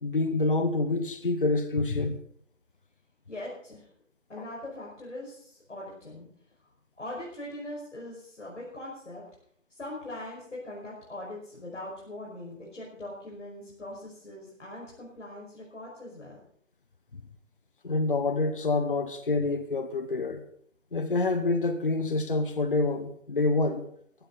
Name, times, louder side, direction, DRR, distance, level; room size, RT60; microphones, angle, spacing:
voice 1, 0.0-2.2 17.8-20.4 20.9-23.8, left 3 dB, 40° left, 1.2 m, -27 dB
voice 2, 3.3-3.8 4.3-6.3 7.0-9.2 9.7-16.4, left 1 dB, 60° left, 5.7 m, -41 dB
17.5 x 15.5 x 4.1 m
figure-of-eight pair, 165°, 39 cm